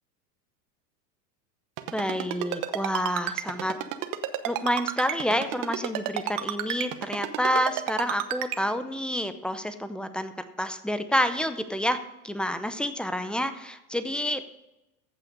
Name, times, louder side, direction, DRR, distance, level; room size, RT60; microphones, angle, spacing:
Ringtone, 1.8-8.6, right 14 dB, 40° right, 1.0 m, -30 dB
voice 1, 1.9-3.8 4.4-10.3 10.6-12.0 12.2-14.5, equal, ahead, 10 dB, 0.5 m, -28 dB
15.0 x 5.9 x 5.2 m, 0.94 s
hypercardioid pair, 110°, 47 cm